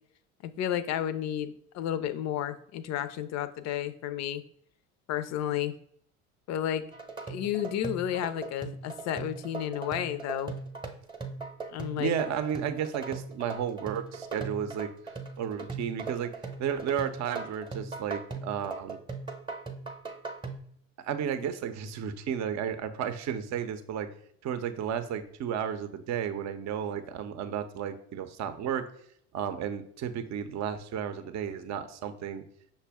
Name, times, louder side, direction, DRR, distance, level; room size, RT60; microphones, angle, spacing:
voice 1, 0.4-4.4 5.1-5.7 6.5-6.8 7.3-10.5 11.7-12.1, left 10 dB, 45° left, 12 dB, 0.5 m, -32 dB
sound 1, 6.9-20.6, right 4 dB, 10° right, 0.8 m, -39 dB
voice 2, 12.0-16.3 16.6-19.0 21.0-24.1 24.4-28.9 29.3-32.4, right 8 dB, 45° right, 10 dB, 0.6 m, -33 dB
5.9 x 2.2 x 3.5 m, 0.67 s
hypercardioid pair, 70°, 39 cm